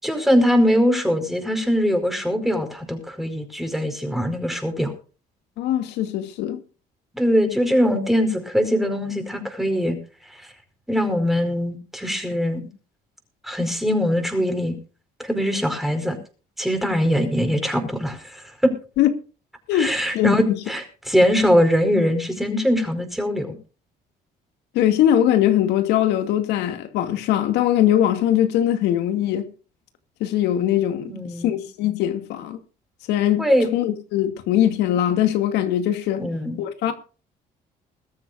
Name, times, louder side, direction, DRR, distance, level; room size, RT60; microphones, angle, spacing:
voice 1, 0.0-4.9 7.1-10.0 10.9-12.7 13.4-14.7 15.2-16.2 16.6-18.7 19.7-23.5 31.1-31.6 33.4-33.7 36.2-36.6, equal, ahead, 4.9 m, -22 dB
voice 2, 5.6-6.6 19.0-19.1 19.7-19.9 20.1-20.6 24.7-29.5 30.2-31.1 31.4-32.6 33.1-33.4 33.7-36.2 36.6-36.9, left 11 dB, 90° left, 2.3 m, -21 dB
21.5 x 13.0 x 2.6 m
cardioid pair, 110°, 17 cm